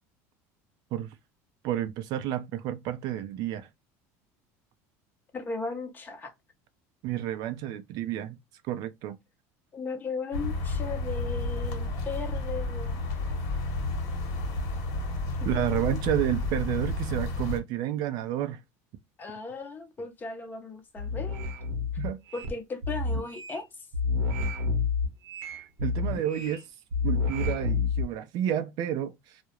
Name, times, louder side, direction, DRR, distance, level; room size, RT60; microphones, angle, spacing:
voice 1, 1.6-3.7 7.0-8.4 8.7-9.2 15.4-18.6 22.0-22.2 25.8-26.6 27.0-29.4, right 11 dB, 55° right, 0.4 m, -30 dB
voice 2, 5.3-6.3 9.7-13.0 15.7-16.0 19.2-21.5 22.3-23.7, left 4 dB, 25° left, 0.7 m, -36 dB
sound 1, 10.3-17.6, left 2 dB, 65° left, 1.0 m, -31 dB
sound 2, 21.0-22.5 22.8-23.6 23.9-26.6 26.9-28.0, left 4 dB, 80° right, 0.8 m, -29 dB
2.3 x 2.0 x 2.9 m
supercardioid pair, 120°, 8 cm